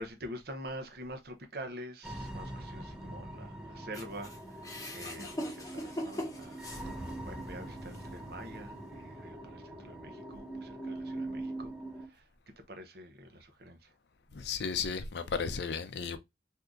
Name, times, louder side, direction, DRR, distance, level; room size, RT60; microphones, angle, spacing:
voice 1, 0.0-4.7 4.9-11.7 12.0-13.9, right 1 dB, 60° right, 0.7 m, -46 dB
sound 1, 2.0-12.1, right 1 dB, 5° right, 0.5 m, -43 dB
sound 2, 3.9-7.4 7.9-8.0 9.0-9.1, equal, 20° left, 0.8 m, -40 dB
voice 2, 14.3-16.2, left 5 dB, 65° left, 0.5 m, -34 dB
3.6 x 2.7 x 2.4 m
head